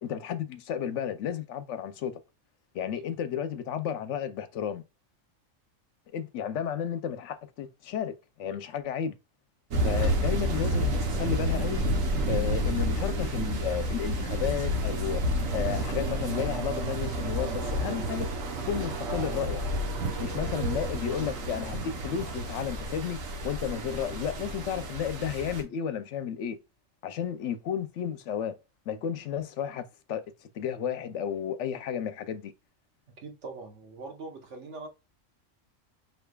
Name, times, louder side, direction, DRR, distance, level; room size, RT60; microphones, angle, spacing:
voice 1, 0.0-2.2 2.7-4.8 6.1-9.2 9.8-11.8 12.3-15.2 15.5-18.3 18.7-19.6 20.2-26.6 27.0-28.5 28.9-30.2 30.5-32.5, left 8 dB, 70° left, 0.9 m, -32 dB
sound 1, 9.7-25.6, equal, 85° right, 1.3 m, -30 dB
voice 2, 33.1-34.9, right 3 dB, 65° right, 1.3 m, -42 dB
5.5 x 3.4 x 2.2 m
omnidirectional pair, 1.3 m